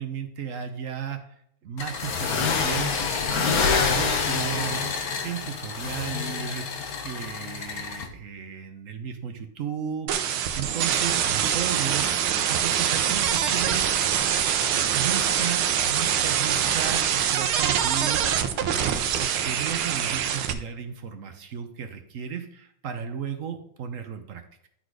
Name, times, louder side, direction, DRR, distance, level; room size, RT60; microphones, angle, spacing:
voice 1, 0.0-2.9 3.3-14.2 14.9-24.7, right 8 dB, 65° right, 7 dB, 0.8 m, -35 dB
sound 1, 1.8-8.1, left 5 dB, 55° left, 1.3 m, -27 dB
sound 2, 10.1-20.5, right 9 dB, 80° right, 1.6 m, -24 dB
sound 3, 11.5-17.1, equal, 15° right, 1.4 m, -45 dB
11.5 x 4.1 x 4.8 m, 0.72 s
omnidirectional pair, 2.2 m